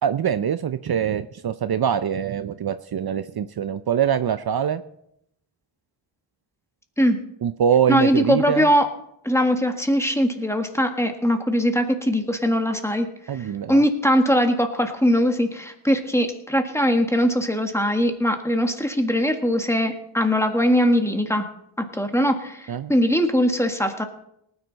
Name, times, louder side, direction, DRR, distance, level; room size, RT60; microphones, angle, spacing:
voice 1, 0.0-4.8 7.4-8.7 13.3-13.8 22.7-22.9, right 8 dB, 55° right, 11 dB, 0.6 m, -23 dB
voice 2, 7.9-8.9 9.2-13.1 13.7-21.5 21.8-24.0, equal, 5° left, 5 dB, 1.6 m, -21 dB
19.0 x 9.8 x 4.0 m, 0.78 s
cardioid pair, 80°, 47 cm